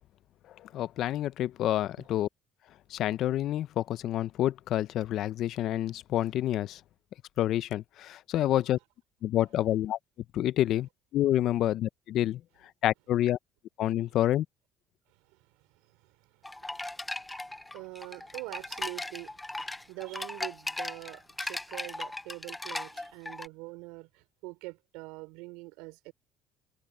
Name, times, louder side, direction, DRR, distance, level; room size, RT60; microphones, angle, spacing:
voice 1, 0.6-2.3 2.9-6.8 7.4-8.8 9.2-10.0 10.3-12.4 12.8-13.4 13.8-14.5, left 13 dB, 65° left, 0.6 m, -28 dB
sound 1, 16.4-23.5, left 2 dB, 10° left, 0.5 m, -38 dB
voice 2, 16.7-17.2 17.7-26.1, right 23 dB, 85° right, 3.1 m, -44 dB
supercardioid pair, 90°, 0 cm